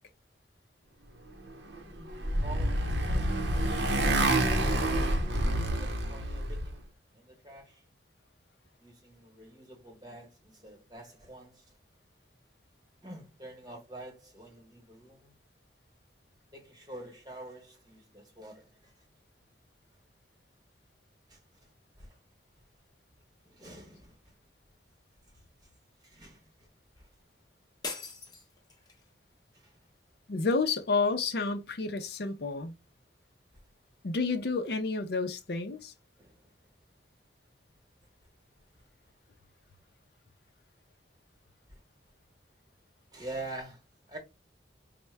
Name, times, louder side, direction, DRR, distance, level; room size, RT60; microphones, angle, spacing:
Motorcycle, 1.7-6.7, right 1 dB, 70° right, 0.7 m, -28 dB
voice 1, 2.4-3.6 5.8-6.9 7.1-7.8 8.8-11.8 13.0-15.3 16.5-18.9 21.3-21.7 22.0-22.2 23.4-24.3 26.0-26.7 27.0-27.1 29.5-29.8 36.2-36.5 41.7-41.8 43.1-43.8 44.1-44.2, right 2 dB, 20° right, 1.1 m, -47 dB
sound 1, 27.8-29.1, left 4 dB, 20° left, 0.7 m, -41 dB
voice 2, 30.3-32.7 34.0-35.9, left 4 dB, 55° left, 0.5 m, -30 dB
4.4 x 2.1 x 3.2 m
head